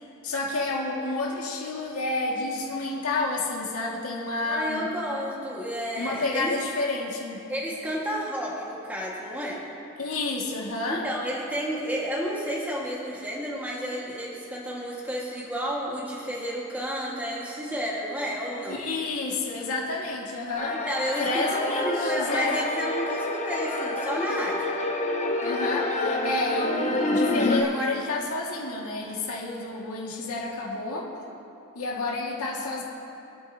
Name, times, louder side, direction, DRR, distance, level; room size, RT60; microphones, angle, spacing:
voice 1, 0.2-4.8 6.0-7.4 10.0-11.0 18.7-20.8 21.2-22.6 25.4-31.1 31.8-32.8, left 2 dB, 80° left, -2 dB, 2.0 m, -30 dB
voice 2, 4.4-6.5 7.5-9.6 10.8-18.8 20.7-24.6, equal, 10° right, -5 dB, 1.7 m, -31 dB
sound 1, 20.5-27.6, left 2 dB, 35° left, 1.0 m, -28 dB
24.5 x 8.8 x 2.8 m, 2.7 s
head